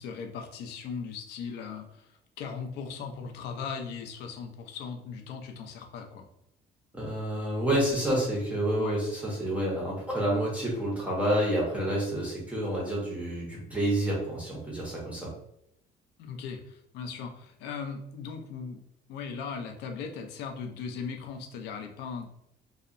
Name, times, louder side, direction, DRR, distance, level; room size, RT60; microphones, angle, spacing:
voice 1, 0.0-2.1 2.4-6.2 8.8-9.0 16.2-18.8 19.1-22.2, left 6 dB, 70° left, 4 dB, 0.5 m, -38 dB
voice 2, 6.9-15.3, right 1 dB, 10° right, -5 dB, 0.5 m, -29 dB
2.7 x 2.0 x 2.5 m, 0.78 s
cardioid pair, 175°, 18 cm